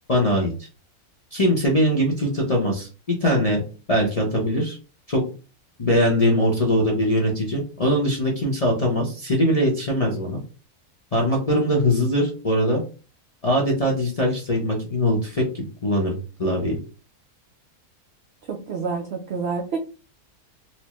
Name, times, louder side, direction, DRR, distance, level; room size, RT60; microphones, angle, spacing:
voice 1, 0.1-0.5 1.3-2.9 3.2-3.6 3.9-4.8 5.1-5.2 5.8-10.4 11.1-12.8 13.4-16.8, equal, 40° left, -3 dB, 0.5 m, -21 dB
voice 2, 18.5-19.8, right 5 dB, 70° right, 1 dB, 0.6 m, -28 dB
4.2 x 2.1 x 2.9 m, 0.34 s
omnidirectional pair, 1.6 m